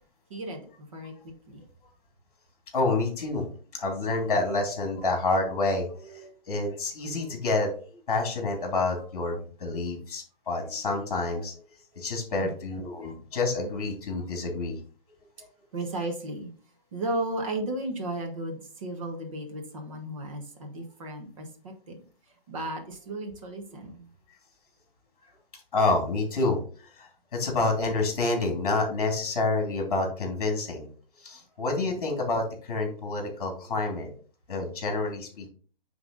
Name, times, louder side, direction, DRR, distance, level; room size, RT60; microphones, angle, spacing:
voice 1, 0.3-1.6 12.4-12.5 15.7-16.5 16.9-22.0 22.5-24.1, right 1 dB, 35° right, 1.5 m, -35 dB
voice 2, 2.7-3.5 3.7-11.5 11.9-14.8 25.7-26.6 27.0-30.9 31.2-34.1 34.5-35.5, left 3 dB, 40° left, 2.5 m, -28 dB
9.1 x 3.5 x 3.9 m
hypercardioid pair, 165°, 29 cm